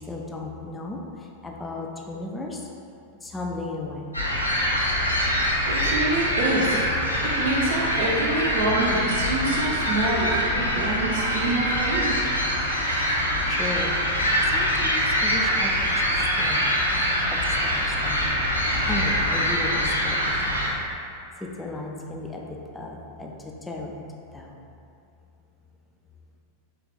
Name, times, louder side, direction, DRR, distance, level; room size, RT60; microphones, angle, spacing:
voice 1, 0.0-2.7 3.2-4.1 13.5-16.7 17.1-18.5 18.8-20.7 21.4-23.9 24.3-24.5, left 2 dB, 10° left, 0 dB, 0.3 m, -35 dB
sound 1, 4.1-20.7, equal, 85° left, 0.4 m, -24 dB
voice 2, 5.7-6.8 7.2-12.2, right 2 dB, 55° right, -4 dB, 0.6 m, -26 dB
3.0 x 2.4 x 3.0 m, 2.6 s
figure-of-eight pair, 90°, 0 cm